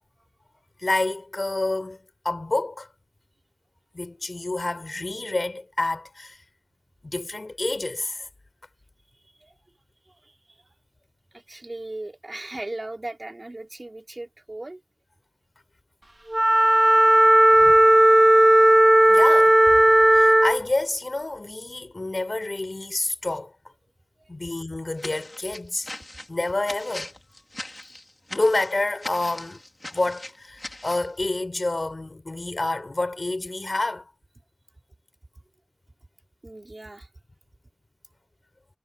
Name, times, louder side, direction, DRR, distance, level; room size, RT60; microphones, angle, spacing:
voice 1, 0.8-2.9 3.9-6.4 7.0-8.3 17.6-17.8 19.1-19.6 20.1-23.5 24.3-25.9 26.3-27.1 28.3-29.6 29.9-34.1, left 2 dB, 55° left, 4.6 m, -28 dB
voice 2, 9.1-9.5 10.1-10.8 11.3-14.8 20.3-20.4 24.2-24.3 36.4-37.1, right 2 dB, 45° right, 3.6 m, -38 dB
Wind instrument woodwind instrument, 16.3-20.6, right 1 dB, 25° right, 0.4 m, -15 dB
sound 1, 25.0-31.1, left 1 dB, 35° left, 3.8 m, -40 dB
wide cardioid pair, 45°, 0 cm